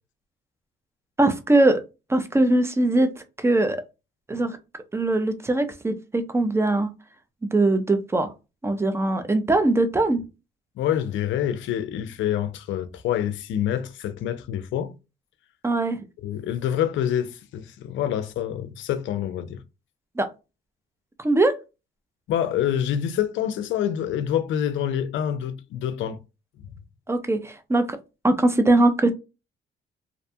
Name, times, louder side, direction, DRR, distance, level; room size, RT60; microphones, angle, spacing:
voice 1, 1.2-1.8 2.1-3.8 4.3-4.6 4.9-6.9 7.4-8.3 8.6-10.2 15.6-16.0 20.2-20.3 21.2-21.6 27.1-28.0 28.2-29.1, right 2 dB, 15° right, 0.5 m, -21 dB
voice 2, 10.8-14.9 16.2-19.6 22.3-26.2, left 10 dB, 75° left, 0.5 m, -26 dB
2.6 x 2.1 x 2.7 m
cardioid pair, 90°, 20 cm